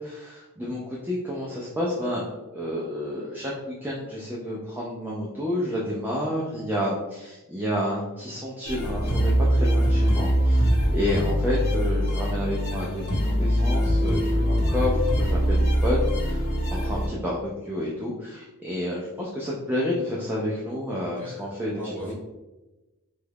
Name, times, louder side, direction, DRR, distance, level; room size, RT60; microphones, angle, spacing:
voice 1, 0.0-2.3 2.5-3.5 3.8-22.1, left 1 dB, 10° right, -5 dB, 0.4 m, -30 dB
sound 1, 8.6-17.1, equal, 65° left, 0.9 m, -23 dB
voice 2, 21.2-22.1, equal, 10° left, -8 dB, 1.2 m, -39 dB
3.1 x 2.3 x 3.3 m, 1.1 s
head